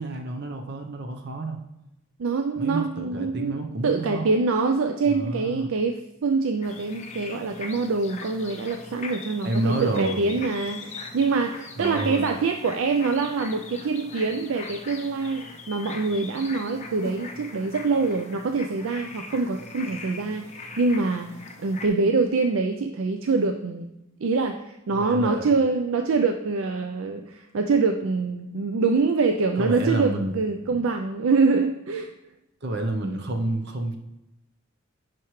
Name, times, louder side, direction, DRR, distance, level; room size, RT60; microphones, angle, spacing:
voice 1, 0.0-1.6 2.6-4.3 5.1-5.7 9.4-10.3 11.8-12.3 24.9-25.5 29.6-30.8 32.6-34.0, right 1 dB, 50° right, 4 dB, 0.8 m, -29 dB
voice 2, 2.2-3.5 3.8-24.0 24.2-32.1, right 4 dB, 65° right, 6 dB, 0.4 m, -25 dB
sound 1, 6.6-21.9, left 4 dB, 30° left, 0.6 m, -41 dB
10.5 x 4.5 x 3.1 m, 0.88 s
head